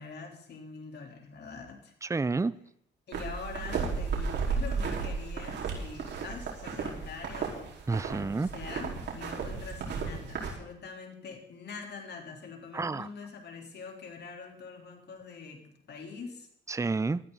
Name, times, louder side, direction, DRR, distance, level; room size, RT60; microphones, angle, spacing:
voice 1, 0.0-1.9 3.1-7.7 8.1-16.5, left 5 dB, 55° left, 2 dB, 3.8 m, -44 dB
voice 2, 2.0-2.5 7.9-8.5 12.7-13.1 16.7-17.2, right 3 dB, 15° right, 17 dB, 0.6 m, -29 dB
sound 1, 3.1-10.5, right 5 dB, 60° right, 4.6 m, -34 dB
19.0 x 13.5 x 4.1 m, 0.71 s
cardioid pair, 90°, 20 cm